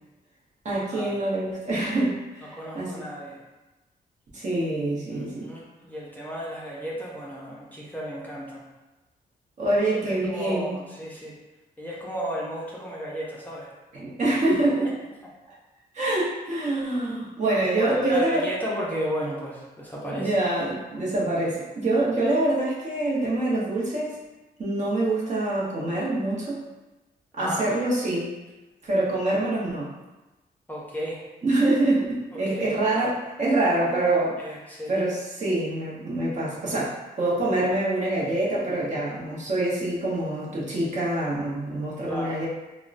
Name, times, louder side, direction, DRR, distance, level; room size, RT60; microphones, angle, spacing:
voice 1, 0.6-2.9 4.3-5.5 9.6-10.7 13.9-14.9 15.5-15.6 15.9-18.5 20.0-24.2 24.6-26.6 27.3-28.3 28.8-29.9 31.4-34.4 34.9-42.5, right 2 dB, 45° right, -5 dB, 0.8 m, -25 dB
voice 2, 2.4-3.4 5.1-8.7 10.1-11.4 11.8-13.7 17.5-20.4 27.4-27.6 30.7-31.2 32.3-32.8 34.4-35.0 42.1-42.5, equal, 10° left, -5 dB, 0.5 m, -34 dB
3.5 x 2.1 x 2.5 m, 1.1 s
cardioid pair, 115°, 17 cm